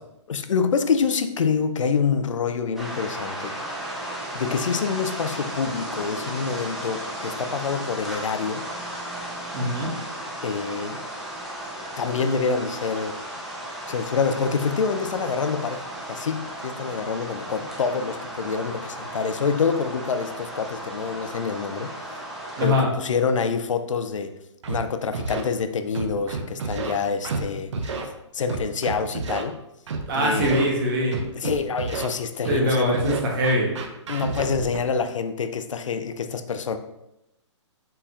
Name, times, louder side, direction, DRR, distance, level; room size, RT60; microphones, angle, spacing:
voice 1, 0.3-3.6 4.3-8.7 10.4-11.0 12.0-13.2 13.9-21.9 22.6-24.3 24.7-28.0 28.3-29.6 30.1-30.8 31.3-33.4 34.1-36.8, left 5 dB, 85° left, 9 dB, 0.5 m, -26 dB
sound 1, 2.8-22.7, right 1 dB, ahead, 0.7 m, -35 dB
voice 2, 9.5-9.9 22.6-22.9 30.1-31.2 32.5-33.7, equal, 45° right, 0 dB, 1.3 m, -23 dB
Scratching (performance technique), 24.6-24.8 25.1-25.4 25.9-26.9 27.2-27.4 27.7-28.0 28.5-29.4 29.9-30.0 30.4-30.6 31.1-32.1 32.4-32.6 32.9-34.8, right 4 dB, 70° right, 0.7 m, -30 dB
4.3 x 3.9 x 2.6 m, 0.87 s
hypercardioid pair, 140°, 16 cm